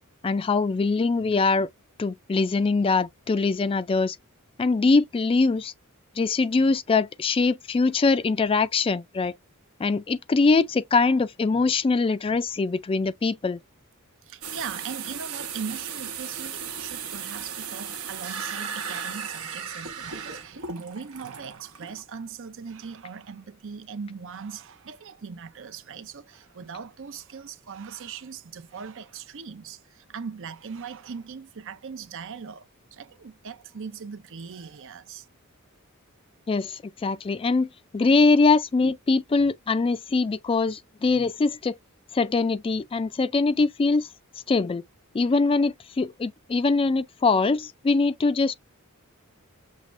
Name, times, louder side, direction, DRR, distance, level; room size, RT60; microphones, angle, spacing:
voice 1, 0.2-1.7 2.0-4.2 4.6-5.7 6.2-9.3 9.8-13.6 36.5-41.7 42.1-44.1 44.5-44.8 45.1-48.5, left 3 dB, 25° left, 0.3 m, -23 dB
voice 2, 14.2-35.3, right 6 dB, 60° right, 0.6 m, -40 dB
sound 1, 14.4-22.0, right 7 dB, 75° right, 1.0 m, -36 dB
6.5 x 2.4 x 3.1 m
head